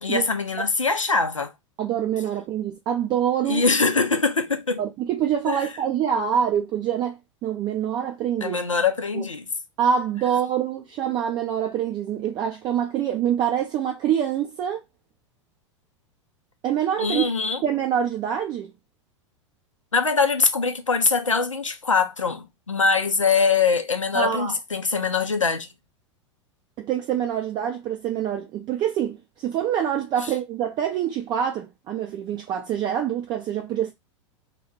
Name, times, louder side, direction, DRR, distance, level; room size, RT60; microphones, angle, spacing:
voice 1, 0.0-1.5 3.5-4.8 5.5-5.7 8.4-9.5 17.0-17.6 19.9-25.7, left 4 dB, 90° left, 0.4 m, -23 dB
voice 2, 1.8-3.6 4.8-8.6 9.1-9.2 9.8-14.8 16.6-17.2 17.6-18.7 24.1-24.5 26.8-33.9, right 9 dB, 30° right, 0.4 m, -25 dB
2.1 x 2.0 x 3.2 m
figure-of-eight pair, 90°, 16 cm